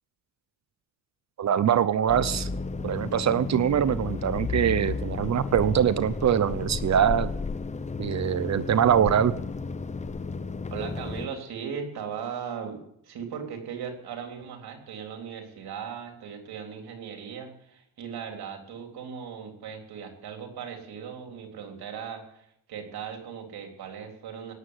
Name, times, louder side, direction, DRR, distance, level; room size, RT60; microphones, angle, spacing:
voice 1, 1.4-2.5 2.8-7.3 8.0-9.3, right 9 dB, 45° right, 15 dB, 0.8 m, -23 dB
sound 1, 2.1-11.3, left 4 dB, 20° left, 0.7 m, -33 dB
voice 2, 10.7-12.8 13.0-24.5, right 7 dB, 75° right, 3 dB, 3.7 m, -38 dB
17.5 x 7.6 x 9.7 m, 0.73 s
cardioid pair, 115°, 39 cm